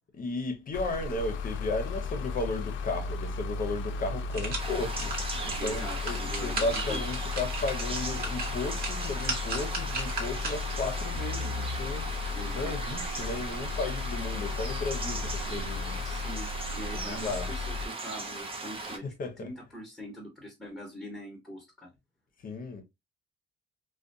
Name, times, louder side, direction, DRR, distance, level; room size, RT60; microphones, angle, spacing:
voice 1, 0.1-5.2 5.4-16.4 16.9-17.5 19.0-19.5 22.4-22.8, left 3 dB, 45° left, 0.7 m, -35 dB
sound 1, 0.7-17.9, left 4 dB, 75° left, 0.4 m, -35 dB
sound 2, 3.5-3.6 4.0-10.9 11.3-11.4, right 3 dB, 50° right, 1.1 m, -38 dB
sound 3, 4.6-19.0, right 3 dB, 25° right, 0.6 m, -38 dB
voice 2, 5.6-7.0 12.3-12.7 16.0-19.0 19.4-21.9, equal, ahead, 1.1 m, -42 dB
2.4 x 2.2 x 2.5 m
cardioid pair, 90°, 20 cm